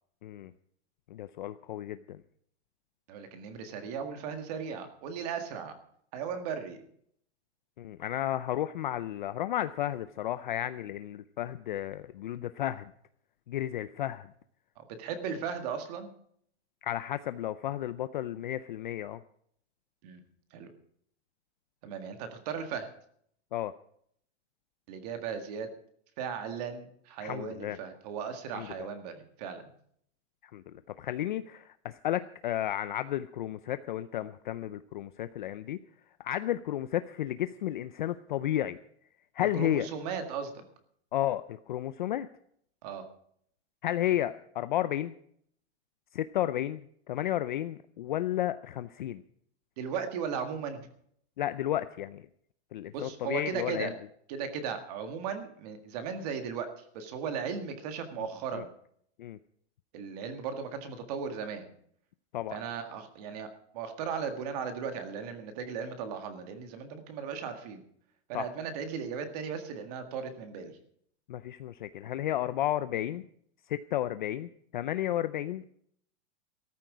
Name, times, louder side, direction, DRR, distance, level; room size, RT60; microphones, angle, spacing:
voice 1, 0.2-0.5 1.1-2.2 7.8-12.9 13.5-14.3 16.8-19.2 23.5-23.7 27.2-27.8 28.5-28.9 30.5-35.8 36.2-38.8 39.3-39.9 41.1-42.3 43.8-45.1 46.1-49.2 51.4-52.3 52.7-53.9 58.2-58.3 58.5-58.6 59.2-59.4 62.3-62.6 68.3-68.5 71.3-73.2 73.7-75.7, left 12 dB, 45° left, 13 dB, 0.5 m, -33 dB
voice 2, 3.1-5.7 6.1-6.8 14.8-16.1 20.0-20.2 20.5-20.7 21.8-22.9 24.9-25.7 26.2-29.7 39.6-40.6 42.8-43.0 49.8-50.8 52.9-53.9 54.3-56.7 56.9-58.7 59.9-61.7 62.5-63.5 63.7-67.8 68.3-70.7, right 6 dB, 35° right, 7 dB, 1.8 m, -36 dB
14.0 x 13.5 x 5.0 m, 0.66 s
supercardioid pair, 175°, 35 cm